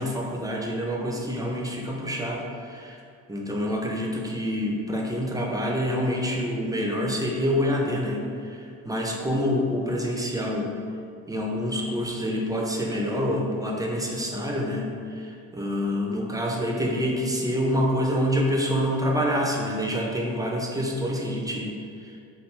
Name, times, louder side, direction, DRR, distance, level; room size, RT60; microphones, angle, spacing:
voice 1, 0.0-3.0 3.3-10.7 11.3-21.7, equal, 10° right, -1 dB, 0.6 m, -27 dB
4.6 x 2.3 x 3.2 m, 2.3 s
hypercardioid pair, 50°, 35 cm